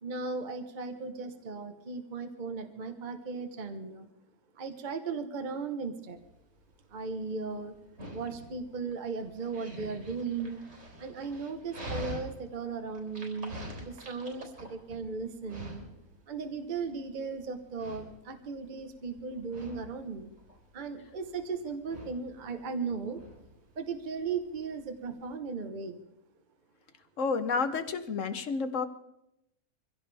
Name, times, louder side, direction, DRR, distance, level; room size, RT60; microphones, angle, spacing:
voice 1, 0.0-4.1 4.5-6.2 6.9-7.7 8.1-10.6 11.0-15.8 16.3-20.3 20.7-23.2 23.7-26.0, right 4 dB, 35° right, 7 dB, 1.1 m, -37 dB
Dog, 6.2-25.4, equal, 55° right, 4.7 m, -46 dB
voice 2, 27.2-28.9, left 5 dB, 60° left, 9 dB, 1.3 m, -30 dB
24.0 x 16.5 x 3.4 m, 0.85 s
omnidirectional pair, 1.6 m